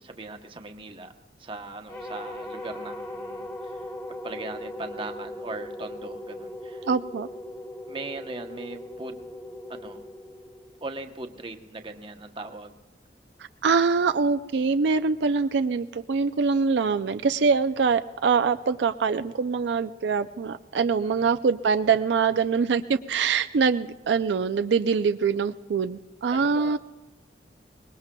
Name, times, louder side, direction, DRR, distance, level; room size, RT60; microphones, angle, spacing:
voice 1, 0.0-1.1 1.4-6.9 7.9-9.3 9.7-10.0 10.8-12.8 21.0-21.3 26.3-26.8, right 2 dB, 30° right, 5 dB, 0.9 m, -39 dB
sound 1, 1.9-11.2, left 1 dB, 20° left, 2.0 m, -39 dB
voice 2, 6.9-7.3 13.6-26.8, right 5 dB, 75° right, 9 dB, 0.4 m, -24 dB
24.0 x 20.5 x 2.3 m, 1.2 s
head